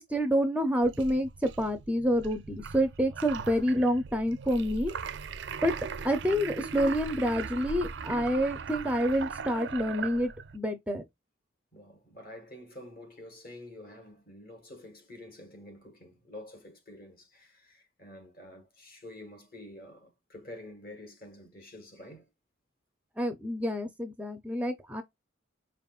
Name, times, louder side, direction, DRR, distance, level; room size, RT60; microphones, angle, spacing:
voice 1, 0.0-4.9 5.6-5.7 6.0-11.0 23.2-25.0, equal, 5° right, 0.5 m, -28 dB
sound 1, 0.8-10.6, right 6 dB, 60° right, 0.4 m, -39 dB
voice 2, 11.7-22.2, left 1 dB, 45° left, 1.6 m, -48 dB
5.1 x 2.5 x 2.3 m
head